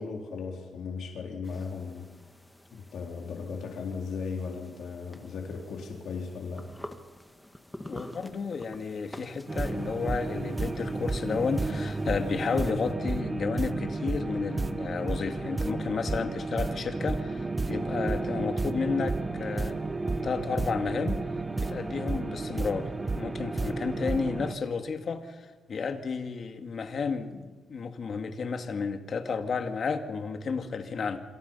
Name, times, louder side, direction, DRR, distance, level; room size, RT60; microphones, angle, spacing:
voice 1, 0.0-2.1 2.7-6.7, left 5 dB, 70° left, 0 dB, 4.0 m, -36 dB
sound 1, 1.4-12.9, left 1 dB, 5° left, 1.8 m, -49 dB
voice 2, 7.8-19.8 20.2-21.2 21.6-31.2, left 5 dB, 45° left, 6 dB, 2.2 m, -32 dB
sound 2, 9.5-24.5, right 3 dB, 20° right, 0.9 m, -32 dB
27.0 x 26.5 x 5.7 m, 1.3 s
cardioid pair, 140°, 0 cm